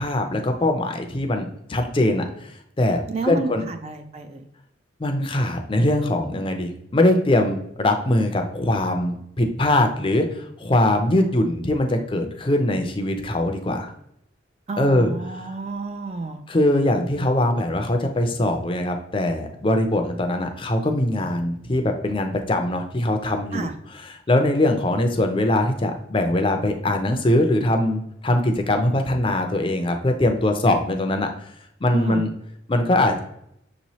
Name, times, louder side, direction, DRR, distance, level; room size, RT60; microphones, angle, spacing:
voice 1, 0.0-2.5 2.8-3.7 5.0-13.9 14.8-15.1 16.5-23.7 24.3-31.3 31.8-32.3 32.7-33.2, left 1 dB, 25° left, 5 dB, 0.5 m, -22 dB
voice 2, 3.1-4.4 14.7-16.4 23.5-23.7 31.9-32.2, right 3 dB, 35° right, 7 dB, 0.3 m, -30 dB
6.1 x 3.0 x 2.7 m, 0.75 s
head